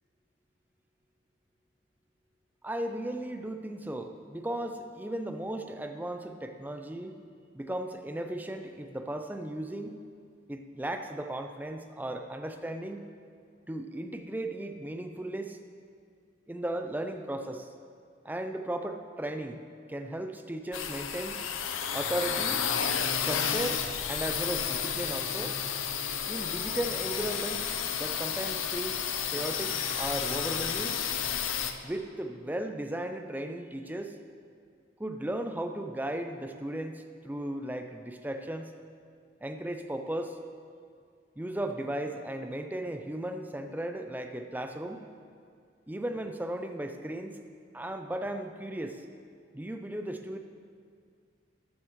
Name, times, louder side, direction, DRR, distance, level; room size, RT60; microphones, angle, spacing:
voice 1, 2.6-7.1 7.5-10.0 10.5-13.1 13.7-15.6 16.5-17.7 18.2-19.6 19.9-21.4 21.9-22.7 23.2-25.6 26.3-31.0 31.8-34.2 35.0-38.7 39.4-40.4 41.4-45.0 45.9-47.4 47.7-49.0 49.5-50.4, right 1 dB, 10° right, 6 dB, 0.4 m, -36 dB
sound 1, 20.7-31.7, left 7 dB, 90° left, 0.6 m, -31 dB
13.5 x 9.6 x 3.1 m, 2.2 s
head